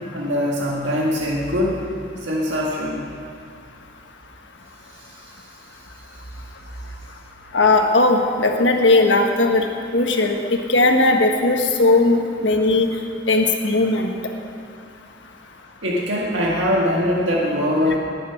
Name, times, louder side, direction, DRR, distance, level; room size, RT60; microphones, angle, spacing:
voice 1, 0.0-1.8 2.2-3.1 5.0-5.3 15.8-18.0, left 1 dB, 90° right, -3 dB, 1.9 m, -22 dB
voice 2, 7.5-9.7 9.9-12.9 13.3-14.1, left 2 dB, 85° left, 3 dB, 1.4 m, -17 dB
19.5 x 8.7 x 5.9 m, 2.4 s
head